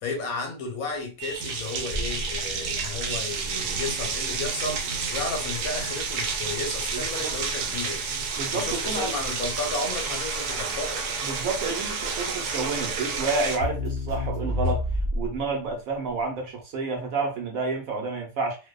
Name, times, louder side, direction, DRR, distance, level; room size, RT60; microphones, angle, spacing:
voice 1, 0.0-4.8 5.1-8.0 8.5-11.1, left 3 dB, 70° left, 0.9 m, -33 dB
sound 1, 1.2-13.6, right 5 dB, 85° right, 1.2 m, -30 dB
Crackle, 1.9-15.5, left 1 dB, 25° left, 0.8 m, -33 dB
voice 2, 6.9-7.4 8.4-9.1 11.2-14.9 15.1-18.6, right 3 dB, 65° right, 1.0 m, -30 dB
2.6 x 2.1 x 2.2 m
omnidirectional pair, 1.8 m